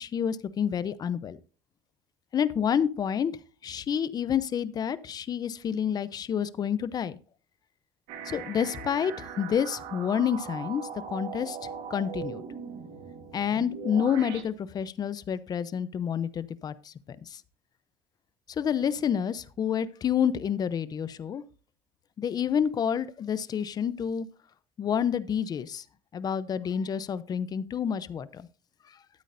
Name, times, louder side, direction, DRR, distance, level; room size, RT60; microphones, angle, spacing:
voice 1, 0.0-1.4 2.3-3.3 3.6-7.2 8.2-11.6 11.9-12.4 13.3-16.9 17.3-17.4 18.6-21.4 22.2-24.3 24.8-25.8 26.1-28.4, left 8 dB, 40° left, 16 dB, 0.7 m, -29 dB
sound 1, 8.1-14.4, right 7 dB, 80° right, 1.6 m, -40 dB
13.0 x 8.3 x 2.6 m, 0.38 s
cardioid pair, 115°, 11 cm